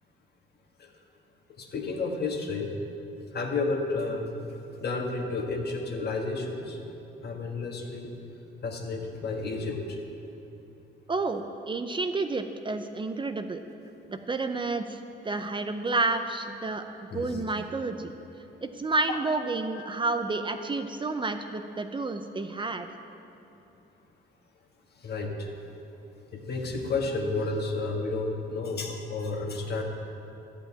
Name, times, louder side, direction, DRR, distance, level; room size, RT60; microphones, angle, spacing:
voice 1, 1.6-2.7 3.3-4.3 4.8-6.8 7.2-8.1 8.6-10.0 17.1-17.4 19.1-19.2 19.7-19.9 25.0-25.5 26.3-29.8, left 3 dB, 55° left, 1 dB, 1.6 m, -31 dB
voice 2, 11.1-13.6 14.1-16.8 17.1-18.1 18.6-22.9, right 3 dB, 25° right, 7 dB, 0.6 m, -30 dB
12.0 x 5.3 x 8.7 m, 3.0 s
cardioid pair, 90°, 20 cm